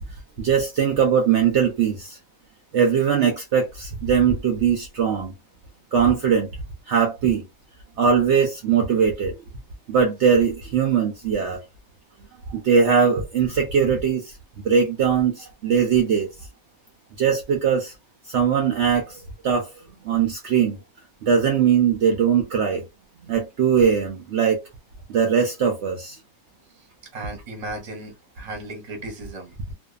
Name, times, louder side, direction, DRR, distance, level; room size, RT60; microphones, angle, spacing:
voice 1, 0.4-2.2 2.7-5.3 5.9-6.5 6.9-7.4 8.0-9.4 9.9-11.6 12.5-14.4 14.6-16.3 17.2-17.9 18.3-19.7 20.0-20.8 21.2-22.8 23.2-24.6 25.1-26.2, right 7 dB, 65° right, 0.8 m, -20 dB
voice 2, 27.1-29.7, right 2 dB, 30° right, 0.8 m, -36 dB
2.6 x 2.2 x 2.3 m
omnidirectional pair, 1.5 m